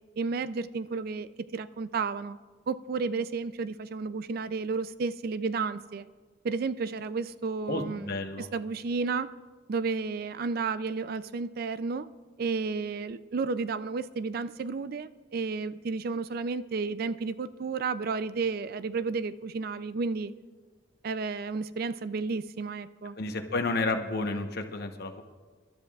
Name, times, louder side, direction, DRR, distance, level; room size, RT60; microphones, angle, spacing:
voice 1, 0.2-2.4 2.7-6.1 6.4-8.1 8.4-9.3 9.7-12.1 12.4-20.3 21.0-23.2, right 4 dB, 50° right, 14 dB, 0.4 m, -32 dB
voice 2, 7.7-8.5 23.2-25.2, left 3 dB, 55° left, 5 dB, 1.0 m, -31 dB
27.5 x 12.0 x 2.4 m, 1.4 s
head